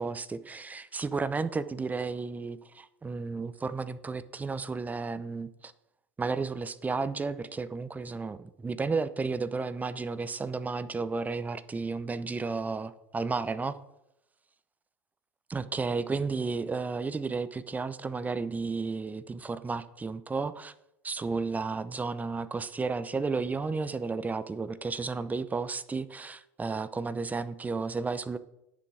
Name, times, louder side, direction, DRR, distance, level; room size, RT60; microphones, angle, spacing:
voice 1, 0.0-5.7 6.2-13.8 15.5-20.7 21.0-28.4, right 4 dB, 20° right, 14 dB, 0.7 m, -33 dB
10.0 x 6.8 x 4.9 m, 0.85 s
hypercardioid pair, 75°, 8 cm